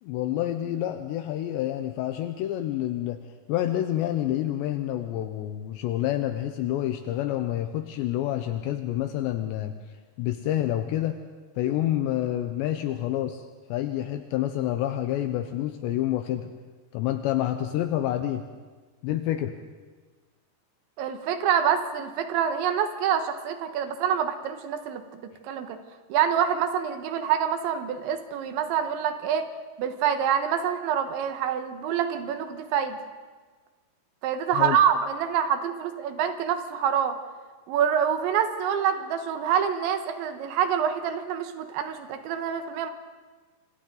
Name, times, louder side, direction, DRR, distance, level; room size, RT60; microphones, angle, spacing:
voice 1, 0.0-3.2 3.5-9.7 10.2-11.2 11.6-13.4 13.7-16.5 16.9-18.4 19.0-19.6 34.5-34.8, left 12 dB, 80° left, 7 dB, 2.9 m, -28 dB
voice 2, 21.0-25.8 26.1-29.5 29.8-33.0 34.2-37.2 37.7-42.9, right 8 dB, 80° right, 7 dB, 3.5 m, -26 dB
28.5 x 26.5 x 3.9 m, 1.4 s
omnidirectional pair, 5.3 m